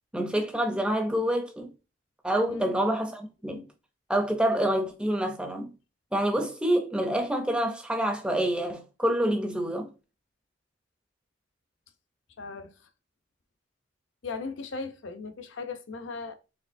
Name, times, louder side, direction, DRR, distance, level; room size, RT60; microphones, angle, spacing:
voice 1, 0.1-1.7 2.2-3.7 4.1-5.7 6.1-9.9, right 1 dB, 5° right, 0.5 m, -27 dB
voice 2, 12.4-12.7 14.2-16.4, left 4 dB, 70° left, 0.6 m, -37 dB
4.3 x 3.2 x 2.5 m
head